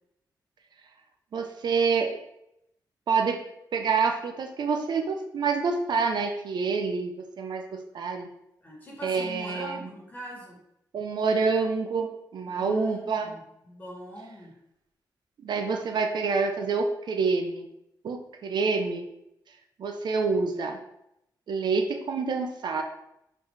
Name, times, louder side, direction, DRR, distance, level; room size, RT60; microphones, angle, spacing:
voice 1, 1.3-2.1 3.1-3.4 3.7-8.3 9.0-9.9 10.9-13.3 15.4-17.7 18.0-19.1 19.8-20.8 21.5-22.8, right 4 dB, 70° right, 4 dB, 0.8 m, -27 dB
voice 2, 8.6-10.6 12.4-14.5, equal, 20° left, -3 dB, 2.4 m, -42 dB
4.9 x 4.8 x 4.9 m, 0.81 s
wide cardioid pair, 120°, 8 cm